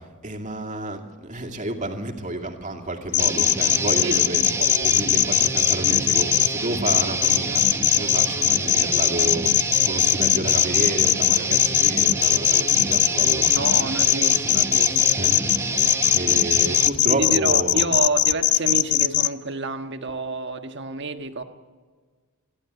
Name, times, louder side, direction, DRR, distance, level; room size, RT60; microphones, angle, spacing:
voice 1, 0.2-4.4 4.8-7.6 7.9-9.5 9.8-13.5 15.2-15.4 16.1-17.9, right 1 dB, 35° right, 3 dB, 2.3 m, -30 dB
sound 1, 3.1-6.5 6.9-19.3, left 13 dB, 50° left, 0.5 m, -19 dB
Guitar, 3.2-16.9, right 3 dB, 15° right, 1.1 m, -28 dB
voice 2, 4.0-4.9 13.5-15.2 17.1-21.4, right 3 dB, 55° right, 7 dB, 1.4 m, -29 dB
29.5 x 12.0 x 8.2 m, 1.5 s
head